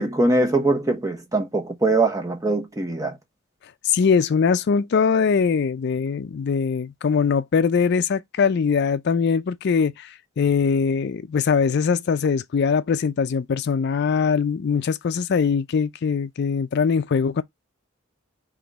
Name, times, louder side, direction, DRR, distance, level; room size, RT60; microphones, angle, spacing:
voice 1, 0.0-3.1, right 2 dB, 15° right, 0.8 m, -22 dB
voice 2, 3.8-17.4, left 6 dB, 50° left, 0.4 m, -22 dB
3.7 x 2.9 x 3.9 m
head